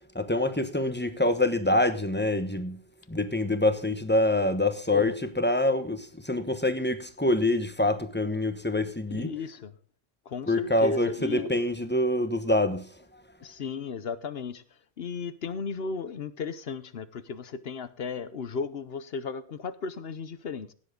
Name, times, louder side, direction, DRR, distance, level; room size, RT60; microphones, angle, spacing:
voice 1, 0.1-2.8 3.1-9.3 10.5-12.9, left 1 dB, 10° left, 1.0 m, -26 dB
voice 2, 9.1-9.7 10.3-11.6 13.4-14.6 15.0-20.7, left 5 dB, 65° left, 1.0 m, -35 dB
17.0 x 7.6 x 3.8 m
omnidirectional pair, 1.1 m